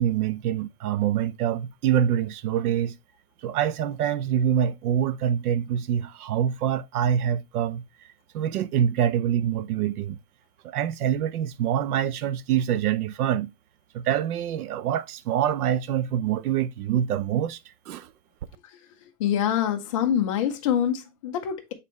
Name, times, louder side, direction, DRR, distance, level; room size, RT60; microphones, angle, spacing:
voice 1, 0.0-2.9 3.4-7.8 8.3-10.2 10.6-13.5 13.9-17.6 17.9-18.1, right 9 dB, 80° right, 0.7 m, -25 dB
voice 2, 19.2-21.7, left 9 dB, 25° left, 0.5 m, -25 dB
7.3 x 4.2 x 3.1 m
supercardioid pair, 180°, 44 cm